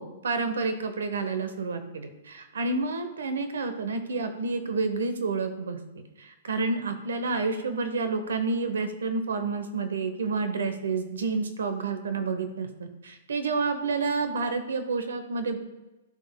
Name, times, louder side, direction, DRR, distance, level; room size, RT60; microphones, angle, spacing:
voice 1, 0.0-15.6, right 4 dB, 90° right, 8 dB, 0.8 m, -29 dB
11.5 x 4.2 x 2.2 m, 1.0 s
hypercardioid pair, 140°, 0 cm